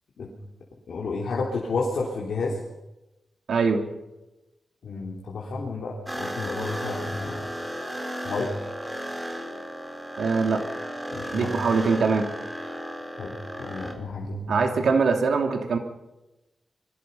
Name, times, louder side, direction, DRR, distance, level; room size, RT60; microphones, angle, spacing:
voice 1, 0.9-2.6 4.8-7.5 8.2-8.5 11.1-11.5 13.2-14.5, left 3 dB, 80° left, -3 dB, 3.8 m, -31 dB
voice 2, 3.5-3.8 10.2-10.6 11.3-12.3 14.5-15.8, right 4 dB, 80° right, 4 dB, 2.8 m, -22 dB
sound 1, 6.1-13.9, equal, 10° right, 4.6 m, -34 dB
26.5 x 22.5 x 5.7 m, 1.0 s
cardioid pair, 80°, 0 cm